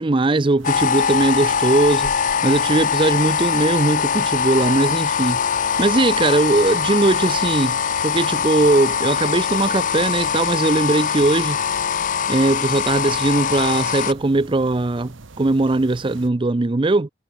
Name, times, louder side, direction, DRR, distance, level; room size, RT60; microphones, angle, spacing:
voice 1, 0.0-2.1 2.4-7.8 8.0-11.6 12.3-17.1, right 2 dB, 25° right, 0.5 m, -19 dB
sound 1, 0.6-14.1, left 7 dB, 40° left, 0.5 m, -22 dB
sound 2, 0.6-16.3, right 3 dB, 75° right, 1.1 m, -43 dB
head